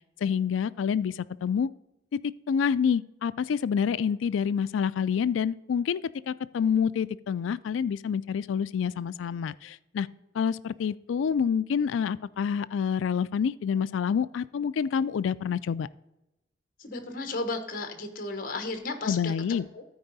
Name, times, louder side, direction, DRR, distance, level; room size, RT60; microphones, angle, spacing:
voice 1, 0.2-1.7 2.1-6.0 6.3-10.1 10.3-15.9 19.0-19.7, left 7 dB, 85° left, 18 dB, 0.3 m, -27 dB
voice 2, 16.8-19.8, left 3 dB, 45° left, 6 dB, 1.1 m, -34 dB
13.5 x 4.7 x 4.0 m, 0.93 s
head